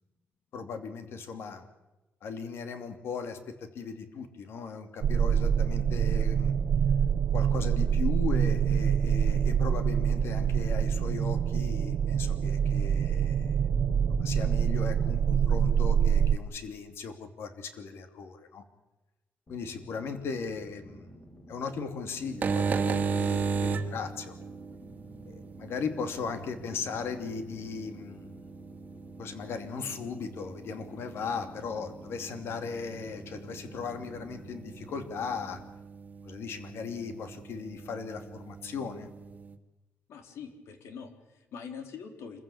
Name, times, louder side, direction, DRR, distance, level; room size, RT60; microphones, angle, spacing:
voice 1, 0.5-1.6 2.2-6.5 7.3-13.5 14.2-18.6 19.5-24.3 25.2-28.4 29.2-35.6 36.2-39.1, left 5 dB, 65° left, 8 dB, 2.8 m, -37 dB
sound 1, 5.0-16.4, right 8 dB, 60° right, 0.7 m, -26 dB
sound 2, 19.5-35.6, equal, 25° left, 4.7 m, -52 dB
sound 3, 22.2-39.5, right 5 dB, 35° right, 1.8 m, -37 dB
voice 2, 40.1-42.4, left 6 dB, 80° left, 6 dB, 3.8 m, -44 dB
26.5 x 15.0 x 8.7 m, 1.1 s
wide cardioid pair, 175°, 5 cm